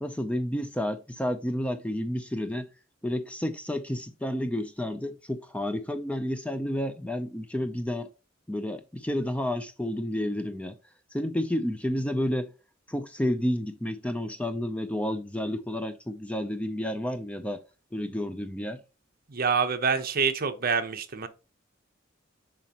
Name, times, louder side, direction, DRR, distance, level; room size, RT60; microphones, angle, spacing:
voice 1, 0.0-2.7 3.0-8.1 8.5-10.8 11.1-12.5 12.9-17.6 17.9-18.8, left 1 dB, 5° left, 0.5 m, -30 dB
voice 2, 19.3-21.3, right 5 dB, 50° right, 0.8 m, -26 dB
7.3 x 5.1 x 2.9 m
head